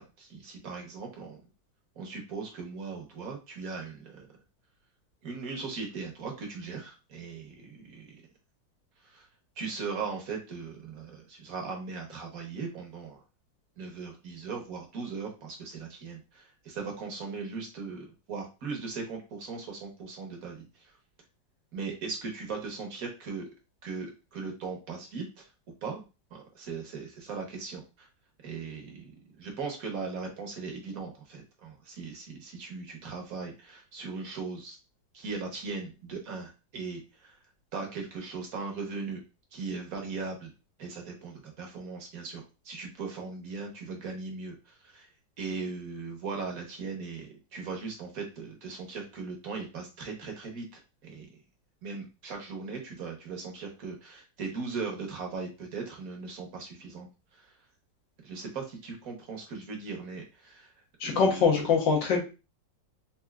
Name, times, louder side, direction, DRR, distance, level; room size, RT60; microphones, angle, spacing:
voice 1, 0.0-1.4 2.0-4.3 5.2-8.2 9.0-9.3 9.6-13.2 13.8-20.9 21.7-23.5 23.8-25.5 25.8-26.0 26.3-28.1 28.4-29.1 29.4-34.8 35.1-37.4 37.7-39.2 39.5-40.5 40.8-45.1 45.4-51.3 51.8-57.5 58.2-60.7 61.0-61.6, right 4 dB, 55° right, 2 dB, 1.2 m, -39 dB
voice 2, 61.0-62.2, left 5 dB, 75° left, 0 dB, 1.6 m, -23 dB
4.3 x 2.6 x 2.3 m, 0.29 s
omnidirectional pair, 2.0 m